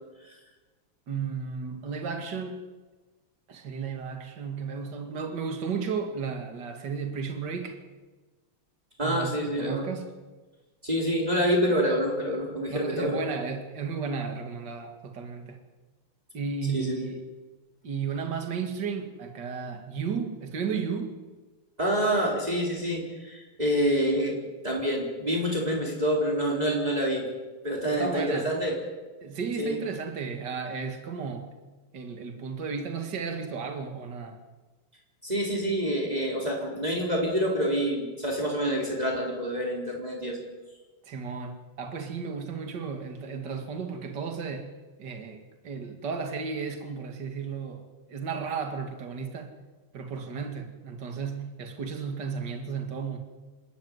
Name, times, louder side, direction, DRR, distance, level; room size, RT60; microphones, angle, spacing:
voice 1, 1.1-2.7 3.5-7.8 9.0-10.2 12.7-15.6 16.3-17.2 17.8-21.2 27.9-28.5 29.2-31.5 31.9-34.4 41.1-44.7 45.0-47.8 48.1-49.5 49.9-53.2, right 5 dB, 50° right, 5 dB, 2.7 m, -34 dB
voice 2, 9.0-9.9 10.8-13.2 16.7-17.1 21.8-24.4 24.6-27.3 27.6-28.8 29.6-29.8 35.2-40.4, equal, 15° right, -2 dB, 4.3 m, -27 dB
27.5 x 13.5 x 9.5 m, 1.3 s
omnidirectional pair, 2.4 m